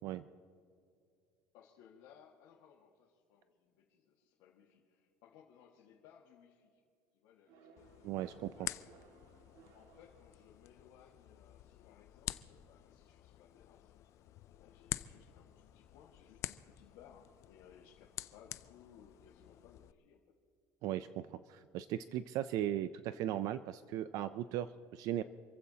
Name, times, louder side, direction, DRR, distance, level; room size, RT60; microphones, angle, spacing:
voice 1, 1.5-6.8 7.1-8.9 9.7-13.9 14.4-20.2, left 8 dB, 70° left, -3 dB, 1.8 m, -62 dB
sound 1, 7.5-11.0, right 5 dB, 70° right, 1.9 m, -63 dB
sound 2, 7.8-19.9, left 13 dB, 40° left, 0.4 m, -48 dB
voice 2, 8.0-8.7 20.8-25.2, right 12 dB, 50° right, 13 dB, 0.4 m, -38 dB
28.0 x 15.5 x 2.8 m, 2.4 s
cardioid pair, 175°, 8 cm